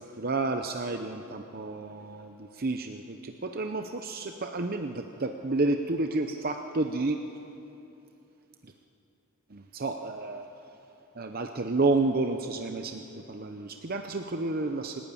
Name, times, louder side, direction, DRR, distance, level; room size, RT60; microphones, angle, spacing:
voice 1, 0.0-7.2 8.6-8.7 9.5-10.5 11.2-15.0, right 2 dB, 45° right, 6 dB, 0.8 m, -30 dB
27.0 x 12.5 x 8.8 m, 2.8 s
head